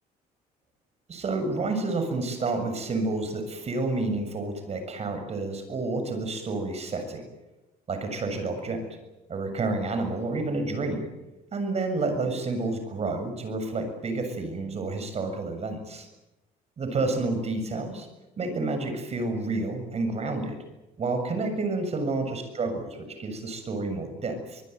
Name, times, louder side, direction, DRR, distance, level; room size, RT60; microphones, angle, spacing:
voice 1, 1.1-7.2 7.9-8.8 9.3-11.1 11.5-16.1 16.8-18.1 18.4-20.6 21.0-24.6, right 3 dB, 40° right, 7 dB, 7.1 m, -29 dB
24.5 x 21.0 x 9.4 m, 1.0 s
cardioid pair, 110°, 17 cm